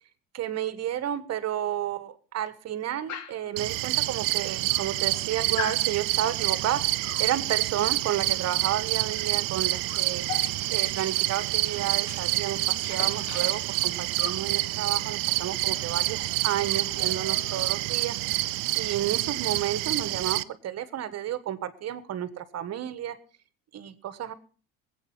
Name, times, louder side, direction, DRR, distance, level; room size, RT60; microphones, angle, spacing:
voice 1, 0.3-10.3 10.7-18.4 18.7-23.2 23.7-24.3, right 11 dB, 45° right, 13 dB, 1.5 m, -31 dB
Dog, 3.1-3.5 4.3-4.4 4.7-5.2 5.6-5.9 7.0-7.3 9.1-9.3 9.6-12.3 12.6-14.5 15.7-15.9 16.2-16.3 16.6-17.9, left 8 dB, 55° left, 1.7 m, -40 dB
sound 1, 3.6-20.4, right 20 dB, 70° right, 0.7 m, -28 dB
20.0 x 8.4 x 5.6 m, 0.39 s
supercardioid pair, 115°, 35 cm